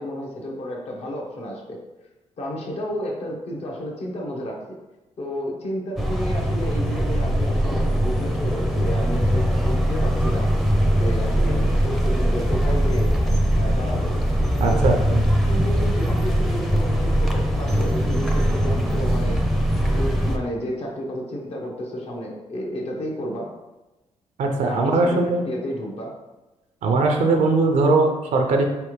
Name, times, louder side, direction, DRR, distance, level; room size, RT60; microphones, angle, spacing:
voice 1, 0.0-1.8 2.4-4.8 5.2-10.5 10.9-13.1 13.5-14.1 14.7-14.9 15.5-19.4 19.9-23.5 24.6-26.1, equal, 60° left, -1 dB, 1.0 m, -31 dB
sound 1, 6.0-20.4, equal, ahead, 0.6 m, -21 dB
voice 2, 14.6-15.2 24.4-25.4 26.8-28.7, right 3 dB, 80° right, 3 dB, 0.6 m, -20 dB
4.1 x 3.4 x 3.1 m, 1.1 s
cardioid pair, 75°, 12 cm